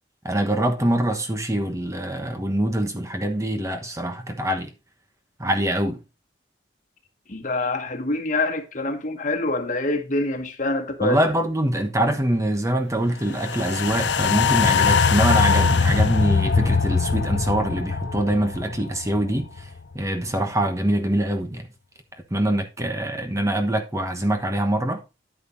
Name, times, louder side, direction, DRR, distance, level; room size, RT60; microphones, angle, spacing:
voice 1, 0.2-4.7 5.4-6.0 11.0-19.7 19.9-21.7 22.3-25.0, right 1 dB, 15° right, 1.1 m, -24 dB
voice 2, 7.3-11.2, left 2 dB, 45° left, 1.7 m, -25 dB
sound 1, 13.4-19.8 20.1-20.2, left 5 dB, 70° left, 0.7 m, -21 dB
10.5 x 9.2 x 2.7 m
head